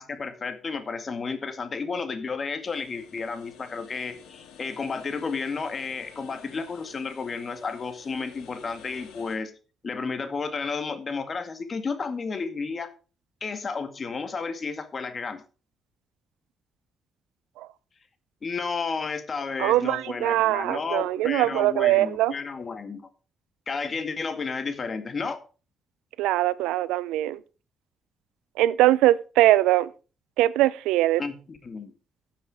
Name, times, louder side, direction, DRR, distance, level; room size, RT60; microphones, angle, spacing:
voice 1, 0.0-9.5 9.8-12.9 13.4-15.4 18.4-23.0 23.7-25.4 31.2-31.9, left 4 dB, 45° left, 2.2 m, -32 dB
sound 1, 2.6-9.4, left 7 dB, 85° left, 2.4 m, -51 dB
voice 2, 19.6-22.3 26.2-27.4 28.6-29.9 30.4-31.2, right 15 dB, 90° right, 0.5 m, -22 dB
13.0 x 7.4 x 4.9 m
supercardioid pair, 60°, 0 cm